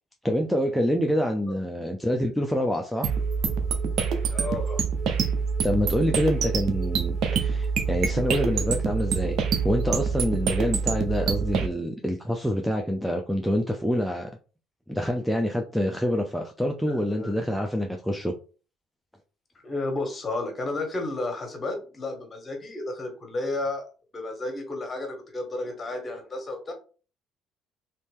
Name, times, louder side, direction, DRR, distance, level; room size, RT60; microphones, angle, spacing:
voice 1, 0.2-3.1 4.2-4.4 5.6-9.4 9.6-14.3 14.9-18.3, equal, ahead, 3 dB, 0.5 m, -26 dB
sound 1, 3.0-11.7, right 6 dB, 65° right, 0.6 m, -26 dB
voice 2, 4.3-4.8 16.9-17.3 19.6-23.8 24.1-26.7, left 2 dB, 30° left, 3 dB, 1.5 m, -32 dB
3.1 x 2.8 x 3.5 m, 0.36 s
supercardioid pair, 80°, 0 cm